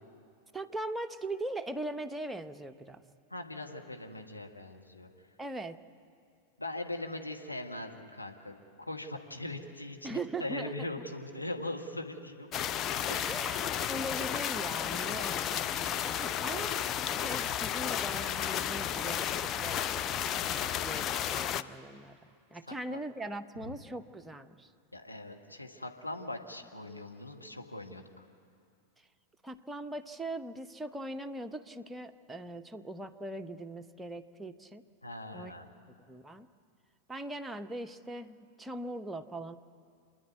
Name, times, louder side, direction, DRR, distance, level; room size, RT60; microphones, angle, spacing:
voice 1, 0.5-3.0 5.4-5.8 10.0-10.7 13.3-16.9 17.2-20.0 20.4-22.2 22.5-24.7 29.4-34.8 35.3-35.5 36.1-36.5 37.1-39.6, right 1 dB, 10° right, 7 dB, 0.8 m, -40 dB
voice 2, 3.3-5.1 6.6-12.5 13.1-13.3 22.6-23.0 23.6-23.7 24.9-28.2 35.0-35.7, left 2 dB, 85° left, 2 dB, 1.5 m, -41 dB
sound 1, 12.5-21.6, left 9 dB, 30° left, 0.6 m, -33 dB
28.0 x 10.0 x 9.5 m, 2.3 s
figure-of-eight pair, 90°, 0 cm